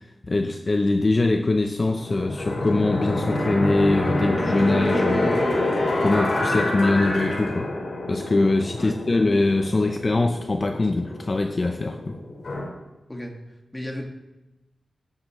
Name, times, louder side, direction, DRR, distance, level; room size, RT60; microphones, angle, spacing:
voice 1, 0.2-5.5 6.0-7.7 8.1-12.2, left 2 dB, 30° left, 5 dB, 0.5 m, -23 dB
sound 1, 2.0-12.7, left 1 dB, 55° left, 4.1 m, -27 dB
voice 2, 13.7-14.1, left 1 dB, 15° left, 1 dB, 1.7 m, -34 dB
19.0 x 8.0 x 3.1 m, 1.0 s
wide cardioid pair, 160°, 0 cm